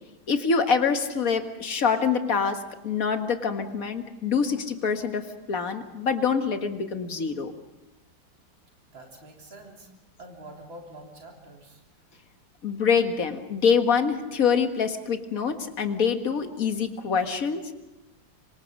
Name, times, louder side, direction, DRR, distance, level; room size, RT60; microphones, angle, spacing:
voice 1, 0.3-2.6 2.8-5.2 5.5-7.5 12.6-17.6, left 6 dB, 45° left, 6 dB, 1.9 m, -25 dB
voice 2, 8.9-9.9 10.2-11.8 12.1-12.2, right 1 dB, 85° right, 0 dB, 4.3 m, -46 dB
27.0 x 25.0 x 5.3 m, 1.0 s
omnidirectional pair, 2.1 m